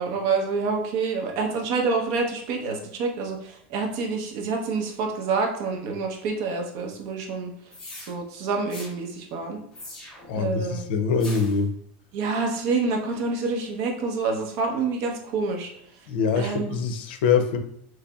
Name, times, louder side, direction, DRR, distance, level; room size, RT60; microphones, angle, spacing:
voice 1, 0.0-7.5 8.0-9.6 10.3-10.8 12.1-15.7 16.4-16.8, right 4 dB, 55° right, 2 dB, 0.8 m, -27 dB
sound 1, 7.7-8.1 8.7-8.9 9.7-10.4 11.2-11.6, left 2 dB, 15° left, 0.9 m, -41 dB
voice 2, 10.3-11.7 16.1-17.6, left 5 dB, 90° left, 7 dB, 0.5 m, -24 dB
4.0 x 3.1 x 2.3 m, 0.68 s
supercardioid pair, 160°, 5 cm